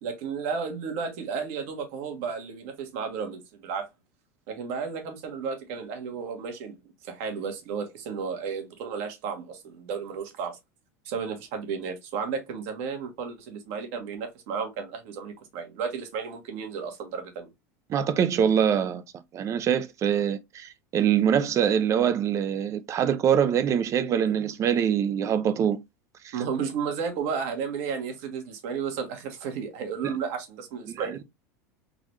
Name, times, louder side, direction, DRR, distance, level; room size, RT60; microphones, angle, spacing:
voice 1, 0.0-3.9 4.5-10.6 11.0-17.5 26.3-31.2, right 6 dB, 65° right, 1.3 m, -33 dB
voice 2, 17.9-19.0 19.3-25.8 26.2-26.4 30.0-30.1 30.9-31.2, right 8 dB, 40° right, 0.6 m, -24 dB
3.9 x 2.5 x 3.1 m
supercardioid pair, 105°, 8 cm